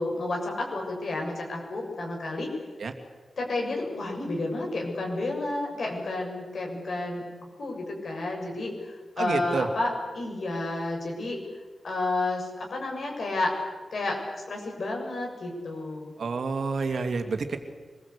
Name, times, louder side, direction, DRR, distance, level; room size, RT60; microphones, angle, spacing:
voice 1, 0.0-2.5 3.4-8.7 9.2-9.9 10.1-11.4 11.8-13.5 13.9-16.1, left 2 dB, 65° left, 1 dB, 6.9 m, -31 dB
voice 2, 9.2-9.7 16.2-17.6, right 4 dB, 70° right, 6 dB, 2.5 m, -29 dB
25.5 x 21.0 x 8.4 m, 1.4 s
wide cardioid pair, 135°, 0 cm